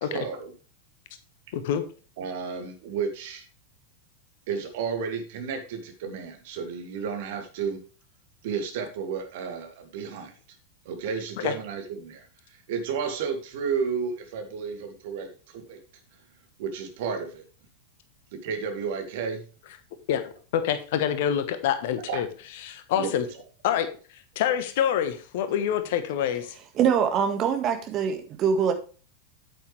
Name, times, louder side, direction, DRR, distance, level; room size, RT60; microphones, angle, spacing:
voice 1, 0.0-0.5 2.2-3.4 4.5-7.8 8.4-10.3 10.9-15.8 16.6-17.4 18.3-19.4 22.1-22.2 23.0-23.1, right 6 dB, 50° right, 5 dB, 2.2 m, -32 dB
voice 2, 1.5-1.8 11.4-11.5 20.1-22.3 22.6-23.2 23.6-23.9 24.3-26.5, left 9 dB, 50° left, 9 dB, 1.3 m, -26 dB
voice 3, 26.8-28.7, right 7 dB, 35° right, 6 dB, 1.7 m, -23 dB
8.6 x 8.6 x 3.3 m, 0.37 s
figure-of-eight pair, 90°, 0 cm